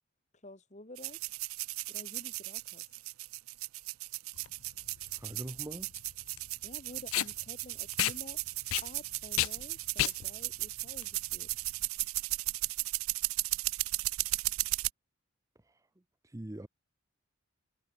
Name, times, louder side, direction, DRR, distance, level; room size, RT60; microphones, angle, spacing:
voice 1, 0.4-1.2 1.9-2.9 6.6-8.4 8.8-11.5, left 1 dB, 35° left, 2.9 m, -50 dB
sound 1, 1.0-14.9, right 21 dB, 85° right, 0.4 m, -36 dB
Packing tape duct tape, 4.4-11.8, left 14 dB, 80° left, 0.4 m, -35 dB
voice 2, 5.0-5.9 15.6-15.8 16.2-16.7, right 1 dB, 15° right, 0.6 m, -43 dB
head